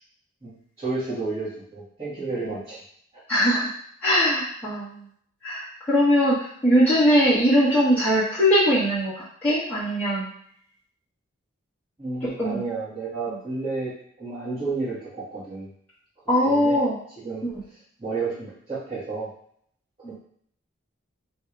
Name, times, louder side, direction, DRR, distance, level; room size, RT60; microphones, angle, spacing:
voice 1, 0.4-2.8 12.0-13.9 14.2-15.7 16.4-16.8 17.2-17.4 18.0-19.3 20.0-20.1, right 3 dB, 25° right, -14 dB, 1.8 m, -31 dB
voice 2, 3.3-3.7 4.0-5.0 5.4-9.1 9.4-10.3 12.4-12.6 16.3-16.9 17.4-17.5 20.0-20.1, equal, 5° left, -11 dB, 1.1 m, -21 dB
3.5 x 2.7 x 4.6 m, 0.65 s
head